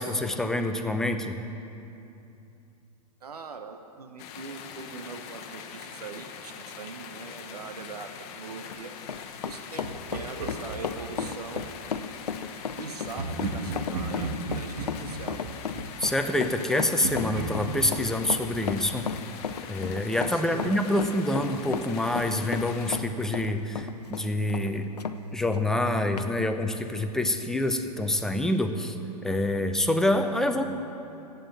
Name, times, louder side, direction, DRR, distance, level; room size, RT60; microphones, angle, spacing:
voice 1, 0.0-1.4 16.0-19.1 19.7-24.9 25.3-29.0 29.2-30.6, left 1 dB, ahead, 6 dB, 0.6 m, -26 dB
voice 2, 3.2-8.9 9.4-11.8 12.8-15.4 20.3-21.0, right 5 dB, 70° right, 7 dB, 1.0 m, -42 dB
sound 1, 4.2-23.0, left 7 dB, 35° left, 1.1 m, -43 dB
Run, 8.5-25.2 25.5-25.7 26.2-26.3, left 6 dB, 75° left, 0.7 m, -34 dB
Laughter, 9.8-11.9 13.1-16.6 17.0-19.8, right 3 dB, 40° right, 1.9 m, -36 dB
12.5 x 8.4 x 8.2 m, 2.8 s
figure-of-eight pair, 110°, 21 cm